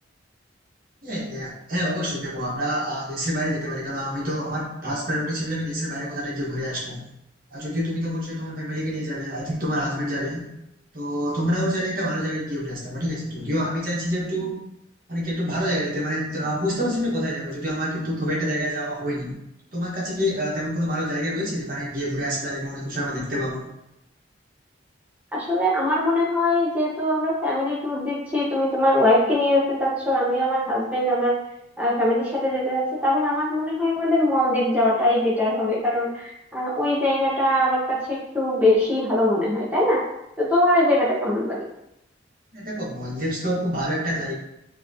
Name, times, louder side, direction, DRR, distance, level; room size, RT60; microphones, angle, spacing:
voice 1, 1.0-7.0 7.5-10.5 10.9-14.6 15.1-19.4 19.7-23.7 42.5-44.3, equal, 45° right, -5 dB, 1.3 m, -27 dB
voice 2, 25.3-31.4 31.8-40.0 40.4-41.6, left 1 dB, 10° right, -7 dB, 1.1 m, -22 dB
5.8 x 2.9 x 2.8 m, 0.85 s
head